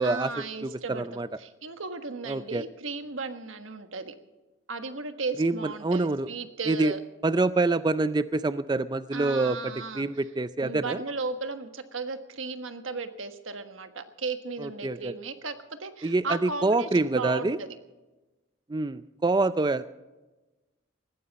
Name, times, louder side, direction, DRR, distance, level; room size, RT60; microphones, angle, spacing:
voice 1, 0.0-4.1 4.7-7.0 9.1-10.1 10.6-17.8, right 3 dB, 90° right, 8 dB, 1.4 m, -36 dB
voice 2, 0.6-1.3 2.3-2.6 5.4-6.3 6.7-6.9 7.2-11.0 14.6-15.1 16.0-17.6 18.7-19.9, right 2 dB, 20° right, 14 dB, 0.4 m, -26 dB
19.0 x 15.5 x 4.1 m, 1.1 s
head